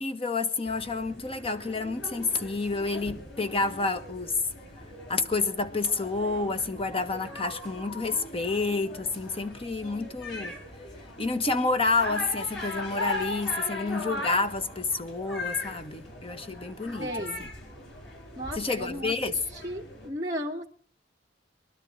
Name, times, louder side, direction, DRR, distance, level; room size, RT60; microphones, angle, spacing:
voice 1, 0.0-4.4 5.1-10.5 11.2-17.1 18.6-19.3, left 3 dB, 30° left, 1.4 m, -29 dB
sound 1, 0.6-20.1, left 2 dB, 80° left, 8.0 m, -39 dB
voice 2, 17.0-17.4 18.4-20.7, equal, 20° right, 2.3 m, -35 dB
23.5 x 12.0 x 4.0 m
head